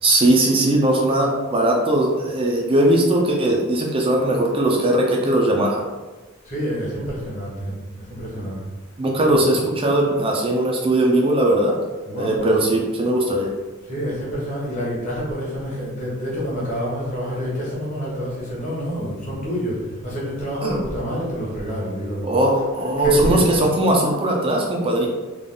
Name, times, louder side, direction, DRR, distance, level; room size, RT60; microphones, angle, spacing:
voice 1, 0.0-5.8 8.4-8.5 9.0-11.8 12.2-13.5 20.6-20.8 22.2-25.1, right 1 dB, 25° right, -1 dB, 0.4 m, -19 dB
voice 2, 6.4-8.6 9.3-9.4 12.1-12.5 13.9-22.6 23.0-23.4, equal, 35° left, -6 dB, 1.3 m, -27 dB
3.6 x 2.3 x 3.8 m, 1.2 s
head